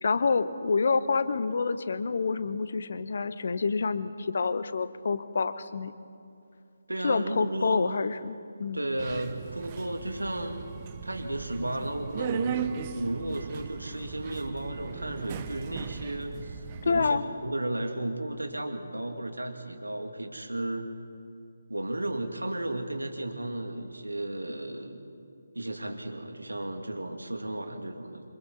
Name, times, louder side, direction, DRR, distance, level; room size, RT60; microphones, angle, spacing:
voice 1, 0.0-5.9 7.0-8.8 16.8-17.2, left 4 dB, 50° left, 12 dB, 1.0 m, -27 dB
voice 2, 6.9-7.9 8.7-10.6 11.0-20.9 21.7-25.0 25.5-28.2, right 1 dB, 75° right, 4 dB, 2.5 m, -34 dB
Subway metro underground, 9.0-17.1, right 7 dB, 25° right, 0.9 m, -38 dB
27.0 x 26.0 x 4.1 m, 2.5 s
figure-of-eight pair, 150°, 0 cm